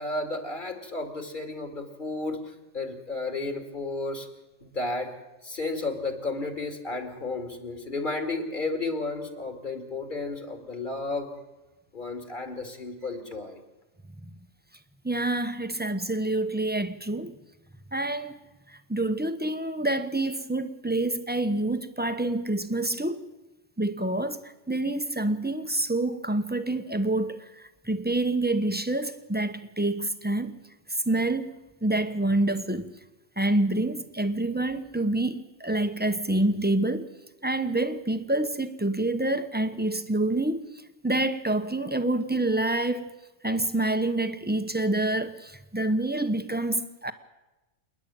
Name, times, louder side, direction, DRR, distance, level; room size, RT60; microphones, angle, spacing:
voice 1, 0.0-4.3 4.6-5.1 5.4-11.3 11.9-13.6, left 2 dB, 45° left, 2.6 m, -33 dB
voice 2, 15.0-17.4 17.9-23.3 23.8-30.5 30.9-31.5 31.8-32.9 33.4-37.1 37.4-40.7 41.0-43.1 43.4-47.1, right 2 dB, 10° right, 1.0 m, -27 dB
28.0 x 10.5 x 8.9 m
omnidirectional pair, 1.2 m